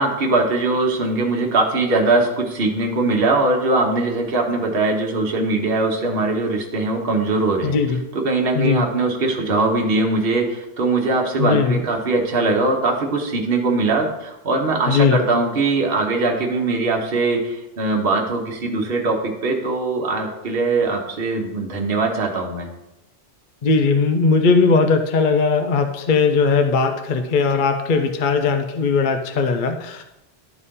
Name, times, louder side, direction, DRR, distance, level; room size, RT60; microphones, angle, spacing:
voice 1, 0.0-7.7 8.1-22.7, right 3 dB, 55° right, 1 dB, 1.3 m, -21 dB
voice 2, 7.6-8.0 8.5-8.9 11.4-11.8 14.8-15.2 23.6-30.0, left 4 dB, 50° left, 6 dB, 0.7 m, -18 dB
12.0 x 4.1 x 3.7 m, 0.90 s
omnidirectional pair, 1.2 m